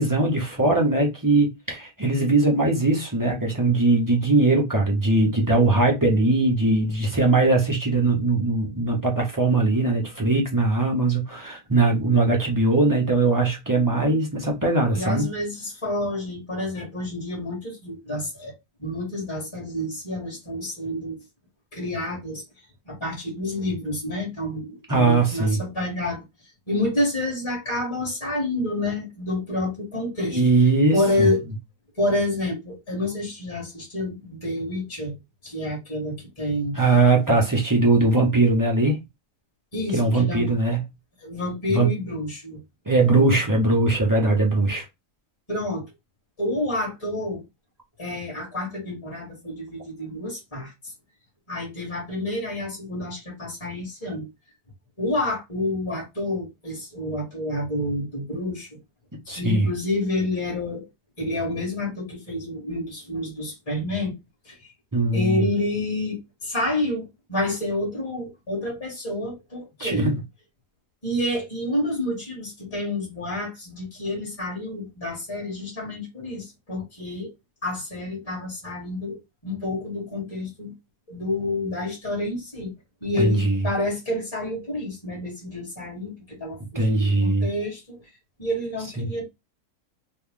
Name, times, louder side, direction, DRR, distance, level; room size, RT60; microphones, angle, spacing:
voice 1, 0.0-15.3 24.9-25.6 30.3-31.3 36.7-39.0 39.9-40.8 41.7-41.9 42.9-44.8 59.3-59.7 64.9-65.4 69.8-70.2 83.2-83.6 86.7-87.5 89.0-89.1, right 2 dB, 30° right, 0.4 m, -20 dB
voice 2, 14.9-21.2 21.7-22.4 22.8-26.2 26.7-30.4 30.9-31.4 31.9-35.1 35.4-36.7 39.7-40.5 41.2-42.6 43.1-43.3 45.5-45.8 46.4-47.4 48.0-50.7 51.5-54.3 55.0-58.7 59.2-60.9 61.2-64.2 64.4-64.7 65.1-70.1 71.0-77.3 77.6-80.7 81.1-82.7 83.0-88.0 88.4-89.2, left 1 dB, 20° left, 1.4 m, -29 dB
3.1 x 2.5 x 3.6 m
omnidirectional pair, 1.8 m